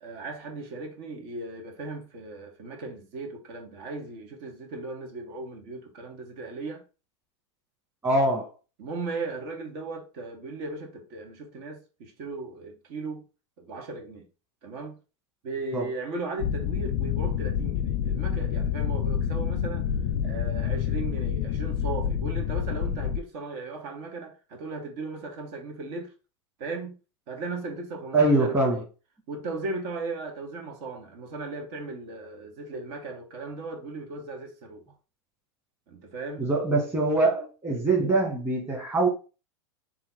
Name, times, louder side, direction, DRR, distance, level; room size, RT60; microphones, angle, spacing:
voice 1, 0.0-6.8 8.8-13.2 13.6-14.3 14.6-15.0 15.4-19.9 20.2-26.1 26.6-26.9 27.3-28.8 29.3-34.8 35.9-36.5, right 3 dB, 60° right, 1.5 m, -37 dB
voice 2, 8.0-8.5 15.7-15.9 28.1-28.8 36.4-39.1, right 2 dB, 20° right, 1.8 m, -23 dB
sound 1, 16.4-23.2, left 8 dB, 50° left, 0.5 m, -28 dB
3.8 x 3.0 x 3.8 m
hypercardioid pair, 110°, 14 cm